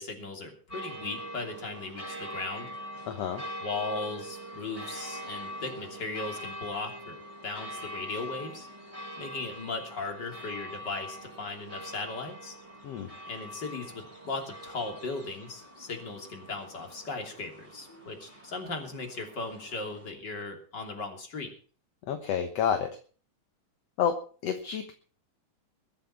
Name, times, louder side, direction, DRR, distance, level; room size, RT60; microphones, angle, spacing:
voice 1, 0.0-2.7 3.6-8.7 9.2-12.5 13.3-21.5, left 3 dB, 30° left, 4 dB, 3.4 m, -37 dB
sound 1, 0.7-20.1, equal, 10° right, 7.9 m, -43 dB
voice 2, 3.1-3.4 12.8-13.1 22.1-23.0 24.0-24.9, left 8 dB, 60° left, 8 dB, 2.0 m, -29 dB
22.0 x 7.9 x 5.8 m, 0.41 s
omnidirectional pair, 3.8 m